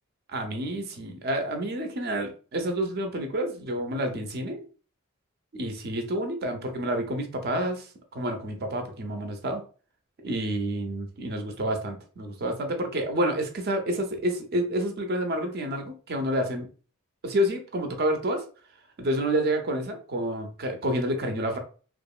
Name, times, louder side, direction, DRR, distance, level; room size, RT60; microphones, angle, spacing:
voice 1, 0.3-4.6 5.5-9.6 10.2-16.7 17.2-18.4 19.0-21.6, right 1 dB, 45° right, 5 dB, 0.5 m, -29 dB
2.8 x 2.4 x 2.3 m, 0.37 s
head